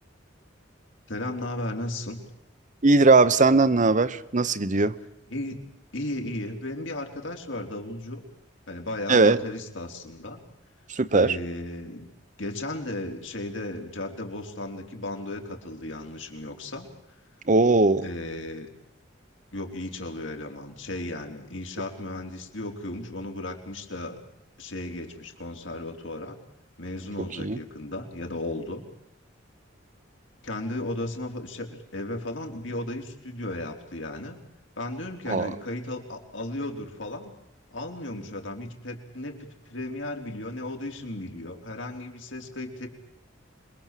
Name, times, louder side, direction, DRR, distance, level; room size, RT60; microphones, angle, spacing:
voice 1, 1.1-2.2 5.3-5.6 5.9-8.2 8.7-10.4 11.1-12.1 12.4-16.9 18.0-18.7 19.5-24.2 24.6-26.4 26.8-28.8 30.4-34.4 34.8-37.3 37.7-42.9, left 1 dB, 75° left, 3 dB, 3.9 m, -35 dB
voice 2, 2.8-5.0 9.1-9.4 11.0-11.4 17.5-18.0 27.4-27.6 35.3-35.5, right 3 dB, 40° right, 15 dB, 1.0 m, -19 dB
26.5 x 22.0 x 7.6 m, 0.82 s
head